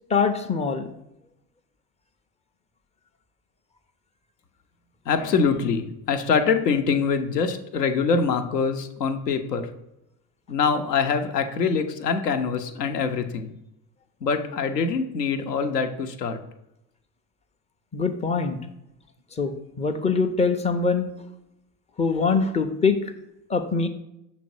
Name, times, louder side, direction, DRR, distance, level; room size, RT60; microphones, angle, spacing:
voice 1, 0.1-0.9 17.9-18.6 19.4-21.1 22.0-23.0 23.5-23.9, left 4 dB, 15° left, 7 dB, 0.4 m, -23 dB
voice 2, 5.1-9.7 10.5-13.5 14.2-16.4, left 5 dB, 80° left, 8 dB, 0.7 m, -24 dB
6.8 x 3.1 x 5.3 m, 0.87 s
figure-of-eight pair, 70°, 47 cm